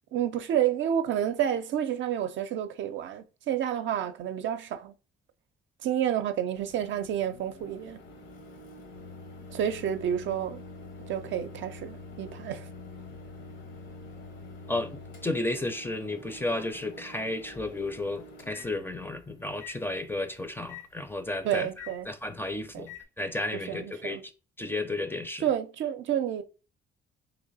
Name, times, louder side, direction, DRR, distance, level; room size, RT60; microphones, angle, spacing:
voice 1, 0.1-4.9 5.8-8.0 9.5-10.6 11.1-12.7 21.4-22.1 22.7-22.9 23.7-24.2 25.4-26.4, right 10 dB, 70° right, 0.5 m, -29 dB
Microwave oven, 6.5-23.0, left 3 dB, 75° left, 1.0 m, -46 dB
voice 2, 14.7-24.3 24.6-25.4, left 2 dB, 10° left, 0.5 m, -33 dB
3.1 x 2.9 x 4.0 m
cardioid pair, 90°, 20 cm